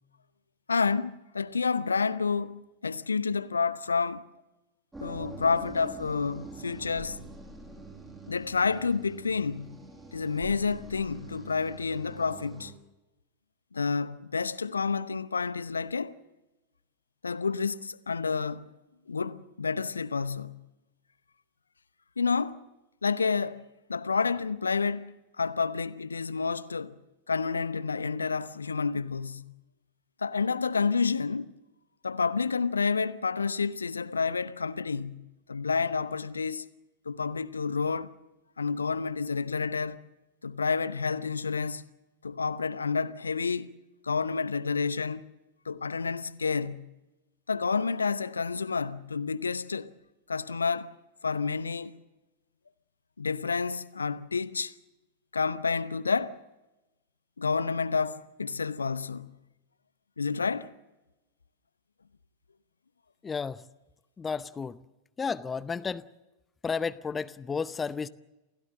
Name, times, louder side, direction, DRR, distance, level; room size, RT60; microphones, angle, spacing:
voice 1, 0.7-4.2 5.0-7.2 8.3-9.8 10.1-12.7 13.7-16.2 17.2-18.7 19.1-20.6 22.2-22.7 23.0-27.0 27.3-29.5 30.2-31.5 32.0-36.7 37.1-38.2 38.6-40.0 40.4-41.9 42.2-43.8 44.0-45.2 45.6-46.9 47.5-49.9 50.3-50.9 51.2-51.9 53.2-54.7 55.3-56.4 57.4-59.3 60.2-60.7, left 5 dB, 75° left, 0.8 m, -29 dB
sound 1, 4.9-12.7, right 3 dB, 15° right, 6.3 m, -46 dB
voice 2, 63.2-63.6 64.2-64.8 65.2-66.0 66.6-68.1, left 5 dB, 15° left, 0.7 m, -32 dB
28.5 x 16.5 x 7.5 m
figure-of-eight pair, 90°, 0 cm